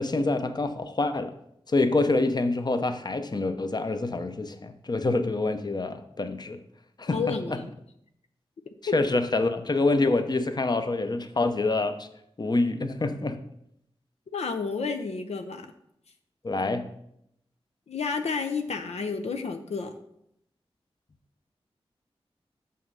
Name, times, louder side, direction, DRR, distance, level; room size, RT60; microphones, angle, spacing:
voice 1, 0.0-1.3 1.7-6.6 7.0-7.4 8.9-12.1 12.4-13.4 16.4-16.9, left 2 dB, 40° left, 8 dB, 0.8 m, -26 dB
voice 2, 7.1-7.7 8.9-9.0 14.3-15.7 17.9-19.9, left 5 dB, 90° left, 7 dB, 0.6 m, -31 dB
6.5 x 5.6 x 5.5 m, 0.76 s
cardioid pair, 55°, 11 cm